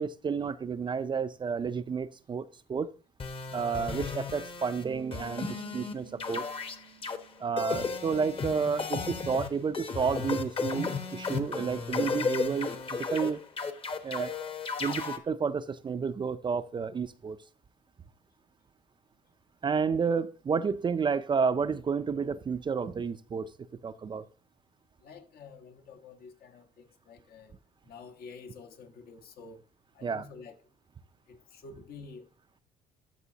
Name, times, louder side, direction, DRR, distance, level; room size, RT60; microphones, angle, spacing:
voice 1, 0.0-2.9 3.5-6.5 7.4-12.7 13.1-13.4 14.0-14.3 14.8-17.4 19.6-23.5 23.8-24.3 30.0-30.2, right 5 dB, 30° right, 0.5 m, -31 dB
sound 1, 3.2-4.8 5.1-5.9 6.2-7.2 7.6-15.2, left 4 dB, 30° left, 1.0 m, -34 dB
Bass guitar, 4.8-8.0, right 11 dB, 65° right, 0.9 m, -50 dB
voice 2, 25.0-27.5 27.8-29.6 29.9-30.6 31.3-32.3, left 4 dB, 65° left, 1.4 m, -49 dB
12.5 x 6.1 x 2.8 m
cardioid pair, 110°, 17 cm